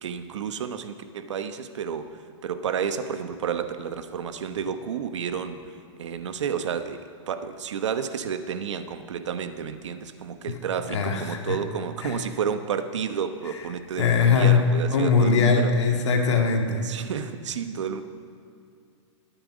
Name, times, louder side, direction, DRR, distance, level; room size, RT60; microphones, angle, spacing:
voice 1, 0.0-5.6 6.0-7.0 7.3-15.7 16.8-18.0, right 7 dB, 70° right, 10 dB, 1.0 m, -31 dB
voice 2, 10.9-11.6 12.0-12.2 14.0-16.9, left 5 dB, 65° left, 2 dB, 2.0 m, -21 dB
21.0 x 9.1 x 5.1 m, 2.4 s
hypercardioid pair, 180°, 16 cm